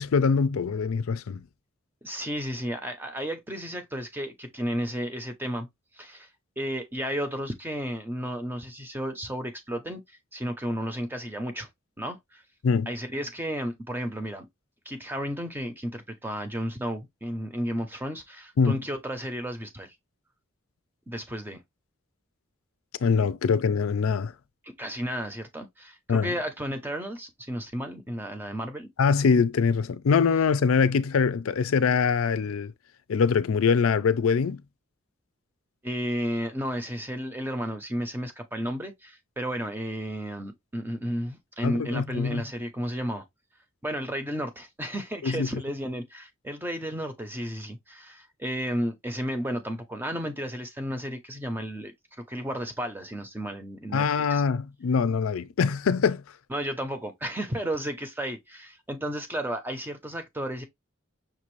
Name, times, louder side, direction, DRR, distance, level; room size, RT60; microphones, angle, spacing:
voice 1, 0.0-1.4 12.6-12.9 18.6-18.8 23.0-24.3 26.1-26.3 29.0-32.7 33.1-34.6 41.6-42.4 45.2-45.5 53.9-56.2, left 5 dB, 80° left, 0.4 m, -23 dB
voice 2, 2.0-5.7 5.9-6.3 6.6-10.0 10.3-11.7 12.0-12.4 12.9-14.5 14.9-20.0 21.1-21.6 24.6-28.9 35.8-43.2 43.8-51.9 52.3-54.4 56.5-60.6, equal, 10° right, 0.6 m, -33 dB
5.9 x 2.5 x 3.1 m
head